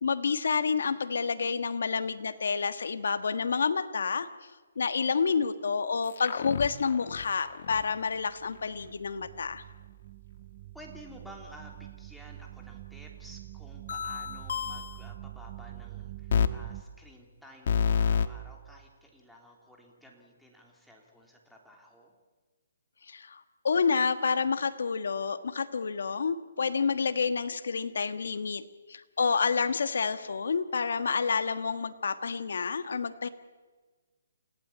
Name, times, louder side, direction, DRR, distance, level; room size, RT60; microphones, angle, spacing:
voice 1, 0.0-4.3 4.7-9.6 23.1-33.3, left 5 dB, 75° left, 10 dB, 1.4 m, -29 dB
sound 1, 6.0-7.8 13.9-15.1 16.3-16.5 17.7-18.3, left 7 dB, 50° left, 1.2 m, -29 dB
sound 2, 7.4-16.8, right 15 dB, 35° right, 0.7 m, -46 dB
voice 2, 10.7-22.1, equal, ahead, -1 dB, 3.2 m, -52 dB
29.0 x 16.0 x 8.7 m, 1.3 s
hypercardioid pair, 165°, 0 cm